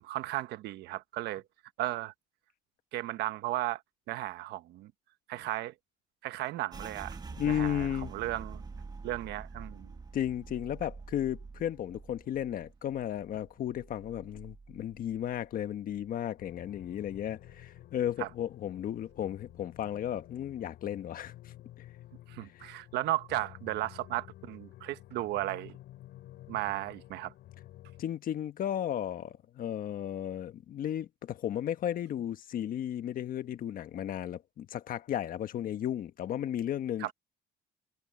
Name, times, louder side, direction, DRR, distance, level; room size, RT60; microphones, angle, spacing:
voice 1, 0.0-1.4 1.8-2.1 2.9-3.8 4.1-4.9 5.3-5.7 6.2-7.2 7.5-8.6 9.0-9.9 18.2-18.3 22.3-25.7 26.5-27.3 37.0-37.1, right 16 dB, 80° right, 1.2 m, -35 dB
sound 1, 6.7-16.1 16.4-17.6 18.0-18.4 18.9-19.5, right 4 dB, 25° right, 1.6 m, -47 dB
voice 2, 7.4-8.1 10.1-21.3 28.0-37.1, left 10 dB, 55° left, 1.4 m, -34 dB
sound 2, 16.4-28.0, left 14 dB, 75° left, 7.0 m, -52 dB
cardioid pair, 110°, 17 cm